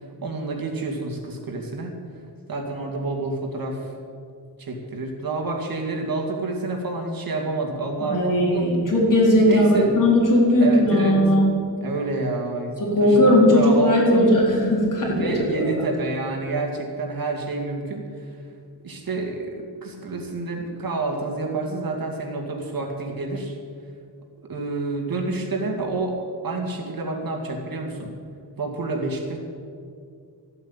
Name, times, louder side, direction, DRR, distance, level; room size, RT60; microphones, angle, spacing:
voice 1, 0.2-2.0 2.5-3.9 4.6-8.7 9.4-9.9 10.6-11.2 11.8-14.3 15.1-18.3 18.8-23.6 24.4-28.1 28.6-29.4, right 3 dB, 55° right, 1 dB, 2.3 m, -28 dB
voice 2, 8.0-11.5 12.8-15.9, left 1 dB, 45° left, -3 dB, 4.3 m, -18 dB
14.0 x 8.2 x 8.9 m, 2.3 s
wide cardioid pair, 135°, 42 cm